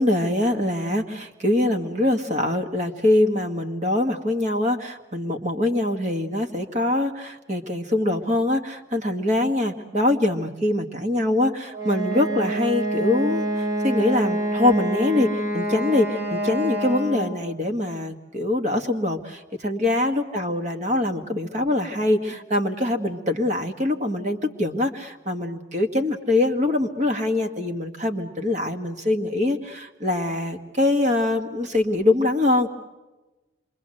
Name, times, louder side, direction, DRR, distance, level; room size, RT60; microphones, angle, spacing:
voice 1, 0.0-32.7, left 1 dB, 40° right, 5 dB, 1.8 m, -23 dB
Wind instrument woodwind instrument, 11.7-17.4, right 1 dB, 75° right, 5.8 m, -27 dB
27.0 x 23.5 x 7.8 m, 1.1 s
head